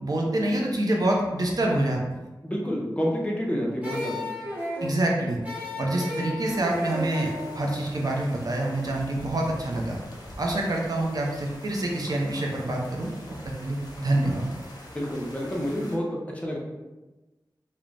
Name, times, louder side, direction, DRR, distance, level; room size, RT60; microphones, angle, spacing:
voice 1, 0.0-2.0 4.8-5.4 5.8-7.3 7.5-10.0 10.4-13.1 13.6-14.5, right 1 dB, 50° right, -1 dB, 0.5 m, -26 dB
voice 2, 2.4-4.3 14.9-16.6, equal, 15° left, -2 dB, 0.5 m, -29 dB
sound 1, 3.8-8.9, left 1 dB, 20° right, 0.9 m, -35 dB
sound 2, 6.4-16.0, left 1 dB, 55° left, 0.6 m, -45 dB
2.4 x 2.0 x 3.2 m, 1.1 s
wide cardioid pair, 60°, 8 cm